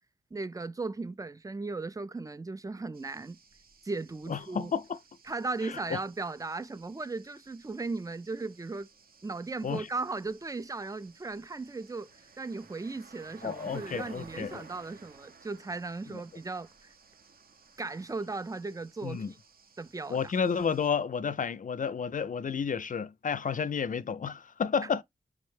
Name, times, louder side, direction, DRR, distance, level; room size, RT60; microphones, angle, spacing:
voice 1, 0.3-3.4 3.8-4.7 5.3-8.9 9.2-12.1 12.4-16.9 17.8-19.4 19.8-20.3, right 3 dB, 20° right, 0.4 m, -37 dB
sound 1, 2.9-20.9, right 5 dB, 65° right, 0.8 m, -57 dB
voice 2, 4.3-5.0 5.6-6.0 9.6-9.9 13.4-14.6 16.1-16.2 19.0-19.3 20.1-25.0, left 6 dB, 55° left, 0.4 m, -31 dB
6.2 x 2.2 x 3.2 m
wide cardioid pair, 80°, 17 cm